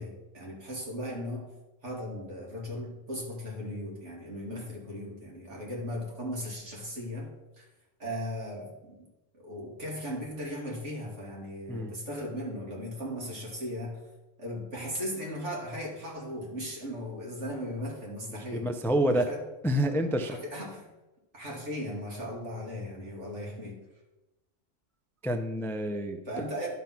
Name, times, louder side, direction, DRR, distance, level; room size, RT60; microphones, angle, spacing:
voice 1, 0.0-1.4 1.8-7.7 8.0-9.1 9.3-14.0 14.4-18.7 19.1-19.4 20.2-20.9 21.3-23.8 26.3-26.7, equal, 70° right, -2 dB, 2.9 m, -37 dB
voice 2, 18.5-19.3 19.6-20.4 25.2-26.2, right 1 dB, 5° left, 6 dB, 0.4 m, -28 dB
11.5 x 5.4 x 6.0 m, 1.1 s
omnidirectional pair, 1.2 m